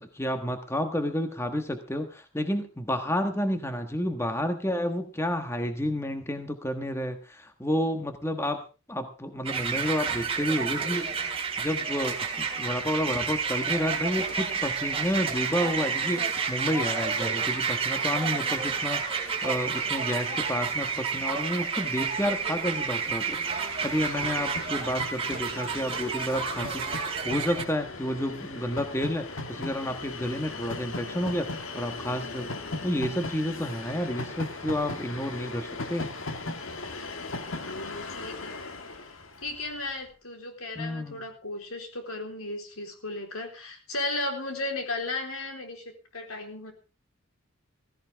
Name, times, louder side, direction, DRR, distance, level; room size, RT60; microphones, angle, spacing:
voice 1, 0.0-8.6 8.9-11.3 11.6-32.5 32.8-36.1 40.8-41.2, equal, 10° left, 7 dB, 1.4 m, -30 dB
sound 1, 9.4-27.6, right 5 dB, 25° right, 3.0 m, -30 dB
Train, 21.5-39.9, left 2 dB, 65° left, 1.8 m, -38 dB
voice 2, 37.6-39.1 39.4-46.7, left 2 dB, 80° left, 4 dB, 4.0 m, -35 dB
16.5 x 16.0 x 3.6 m, 0.33 s
head